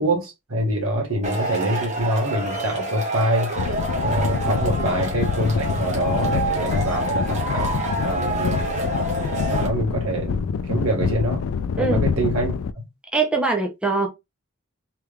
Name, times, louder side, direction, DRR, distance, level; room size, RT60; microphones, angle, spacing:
voice 1, 0.0-3.5 4.0-8.6 9.5-11.4 11.8-12.8, right 1 dB, 80° right, 1.5 m, -25 dB
Male speech man speaking / Shout / Clapping, 1.2-9.7, right 2 dB, 35° right, 1.0 m, -27 dB
sound 1, 3.6-12.7, left 6 dB, 75° left, 0.3 m, -26 dB
voice 2, 13.1-14.1, right 3 dB, 5° right, 0.5 m, -22 dB
3.3 x 3.3 x 2.3 m
head